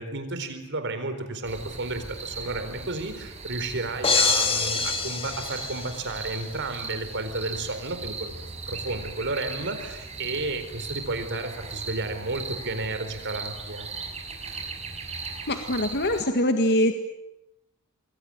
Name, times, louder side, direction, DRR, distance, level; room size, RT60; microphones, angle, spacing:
voice 1, 0.0-8.3 8.7-13.9, right 2 dB, 55° right, 9 dB, 4.3 m, -32 dB
sound 1, 1.4-16.2, right 4 dB, 30° right, 5.7 m, -38 dB
sound 2, 4.0-6.3, left 4 dB, 25° left, 2.2 m, -25 dB
voice 2, 15.5-16.9, left 1 dB, 50° left, 5 dB, 1.9 m, -23 dB
26.5 x 23.0 x 9.0 m, 0.89 s
head